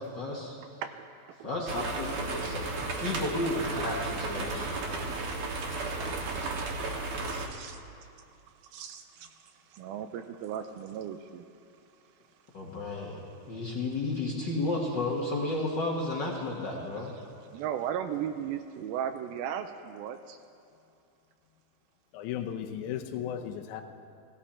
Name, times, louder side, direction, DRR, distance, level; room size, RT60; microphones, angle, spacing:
voice 1, 0.0-0.6 1.4-4.7 5.0-5.3 12.5-17.1, left 2 dB, 60° left, -3 dB, 1.1 m, -33 dB
voice 2, 0.7-1.5 5.7-5.8 7.2-7.8 8.7-11.5 14.7-14.9 15.2-15.7 16.3-20.4, right 9 dB, 80° right, 7 dB, 2.3 m, -38 dB
sound 1, 1.7-7.5, right 3 dB, 65° right, 2.6 m, -34 dB
voice 3, 22.1-23.8, left 10 dB, 75° left, 6 dB, 1.8 m, -35 dB
17.5 x 16.5 x 4.3 m, 2.6 s
omnidirectional pair, 4.4 m